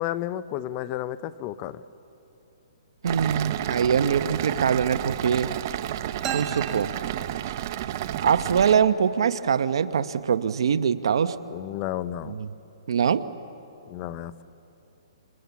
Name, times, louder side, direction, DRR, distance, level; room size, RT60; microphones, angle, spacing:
voice 1, 0.0-1.8 11.5-12.4 13.9-14.4, left 13 dB, 30° left, 15 dB, 0.7 m, -32 dB
voice 2, 3.0-5.5 6.3-6.9 8.2-11.3 12.3-12.5 12.9-13.3, right 7 dB, 65° right, 11 dB, 1.1 m, -23 dB
sound 1, 3.1-8.8, right 12 dB, 40° right, 0.9 m, -31 dB
sound 2, 6.2-7.9, right 7 dB, 20° right, 1.9 m, -36 dB
28.0 x 27.5 x 7.2 m, 2.9 s
hypercardioid pair, 155°, 3 cm